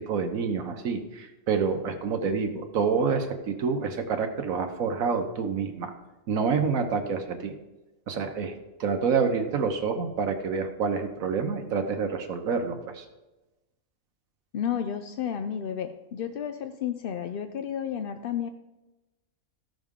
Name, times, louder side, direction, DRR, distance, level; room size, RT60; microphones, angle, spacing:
voice 1, 0.1-5.9 6.3-7.5 8.1-13.0, right 5 dB, 75° right, 5 dB, 1.3 m, -28 dB
voice 2, 14.5-18.5, left 9 dB, 65° left, 8 dB, 0.5 m, -32 dB
14.5 x 6.3 x 3.6 m, 1.1 s
omnidirectional pair, 1.5 m